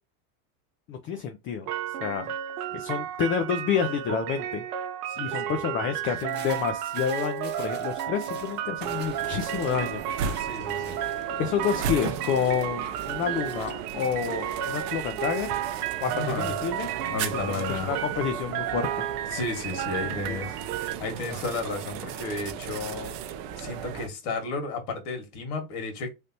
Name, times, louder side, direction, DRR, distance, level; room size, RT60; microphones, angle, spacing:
voice 1, 0.9-1.7 2.0-2.3 2.7-4.6 5.2-10.2 11.4-15.5 16.0-16.9 17.4-19.0 20.3-20.4, left 7 dB, 30° left, 0.4 m, -29 dB
sound 1, 1.7-20.9, right 10 dB, 80° right, 0.8 m, -33 dB
voice 2, 5.1-6.0 10.4-11.0 16.1-16.5 17.1-17.9 19.3-23.1 23.6-26.1, left 3 dB, 65° left, 1.8 m, -33 dB
sound 2, 6.0-13.7, right 4 dB, 20° right, 1.1 m, -48 dB
sound 3, 8.8-24.1, right 7 dB, 50° right, 0.6 m, -36 dB
3.3 x 2.7 x 2.7 m
supercardioid pair, 130°, 45 cm